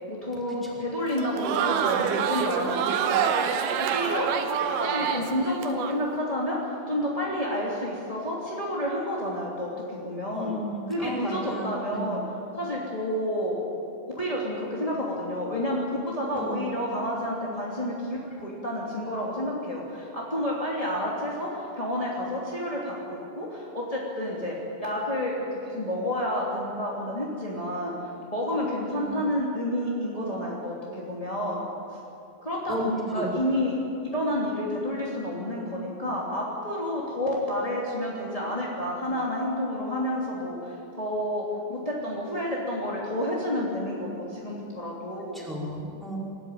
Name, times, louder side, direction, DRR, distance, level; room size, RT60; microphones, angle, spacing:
voice 1, 0.1-3.5 3.9-4.3 4.8-10.5 10.9-13.6 14.2-31.6 32.4-33.8 34.1-45.4, left 1 dB, 15° left, -5 dB, 1.1 m, -30 dB
Crowd, 1.1-5.9, right 7 dB, 75° right, 2.4 m, -26 dB
voice 2, 10.3-12.2 16.3-16.6 29.0-29.1 32.7-33.2 45.3-46.2, equal, ahead, -5 dB, 4.1 m, -34 dB
26.0 x 14.0 x 9.1 m, 2.7 s
omnidirectional pair, 6.0 m